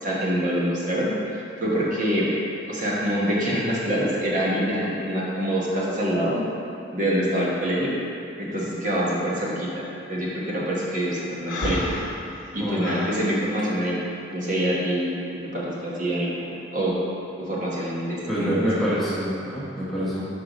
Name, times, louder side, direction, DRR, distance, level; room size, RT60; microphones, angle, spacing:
voice 1, 0.0-2.3 2.7-6.4 6.9-7.9 8.4-11.9 12.5-14.0 14.3-15.2 15.5-16.3 16.7-16.9 17.4-18.8, equal, 40° right, -6 dB, 1.1 m, -25 dB
Breathing, 11.5-13.2, left 1 dB, 90° left, 0.9 m, -30 dB
voice 2, 18.3-20.2, equal, ahead, -9 dB, 0.9 m, -26 dB
5.3 x 4.6 x 4.9 m, 2.7 s
head